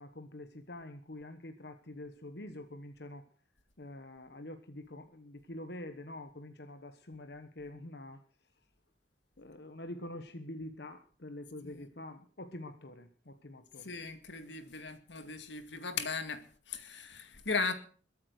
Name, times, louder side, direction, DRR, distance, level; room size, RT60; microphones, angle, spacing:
voice 1, 0.0-3.3 3.8-8.5 9.4-13.9, left 1 dB, 65° left, 1.2 m, -46 dB
voice 2, 13.8-17.7, left 4 dB, 85° left, 2.2 m, -37 dB
22.0 x 8.6 x 6.5 m
head